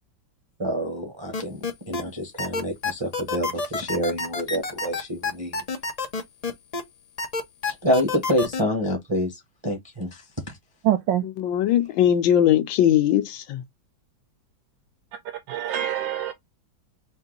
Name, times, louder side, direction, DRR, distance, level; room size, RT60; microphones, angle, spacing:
voice 1, 0.6-5.6 7.7-10.6, equal, 20° right, 0.9 m, -27 dB
sound 1, 1.3-2.0 2.4-6.8 7.2-8.6, left 4 dB, 50° left, 0.4 m, -28 dB
voice 2, 10.8-11.2 15.2-16.3, right 11 dB, 75° right, 1.5 m, -25 dB
voice 3, 11.4-13.6, left 10 dB, 80° left, 1.4 m, -20 dB
4.4 x 2.7 x 3.8 m
omnidirectional pair, 2.1 m